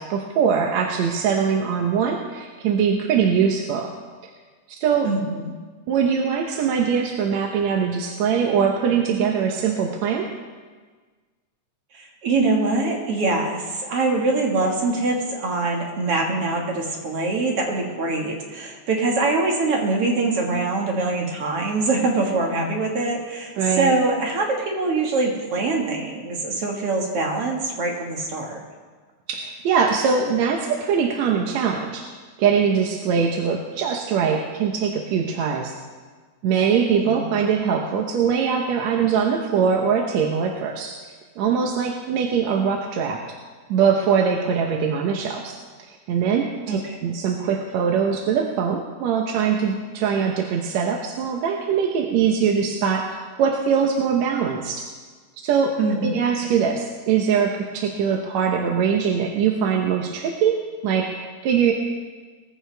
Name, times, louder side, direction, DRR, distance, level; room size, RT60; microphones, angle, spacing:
voice 1, 0.0-3.9 4.7-5.1 5.9-10.3 23.6-23.9 29.3-32.1 32.4-35.7 36.4-41.0 41.4-43.2 43.7-45.6 46.1-54.9 55.4-61.7, right 6 dB, 70° right, 2 dB, 2.1 m, -22 dB
voice 2, 5.0-5.5 11.9-28.6 36.9-37.3 46.7-47.0 55.8-56.2, right 3 dB, 55° right, 0 dB, 2.5 m, -23 dB
20.0 x 14.5 x 3.4 m, 1.4 s
omnidirectional pair, 3.4 m